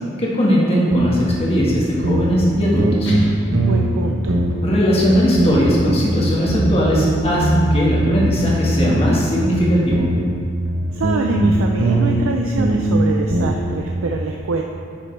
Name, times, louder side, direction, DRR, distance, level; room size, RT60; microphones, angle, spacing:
voice 1, 0.2-3.1 4.6-10.1, equal, 30° left, -5 dB, 1.6 m, -18 dB
sound 1, 0.9-1.4 1.6-1.7 2.0-2.5 2.8-4.0 4.3-4.8 5.0-5.8 6.1-9.3 9.5-12.3 12.6-12.9 13.3-13.8, right 1 dB, 60° right, 0.9 m, -20 dB
Guitar, 3.1-5.1, equal, 60° left, 1.5 m, -28 dB
voice 2, 3.6-4.4 10.9-14.6, right 3 dB, 80° right, 1 dB, 0.5 m, -24 dB
10.0 x 6.5 x 3.3 m, 2.7 s
head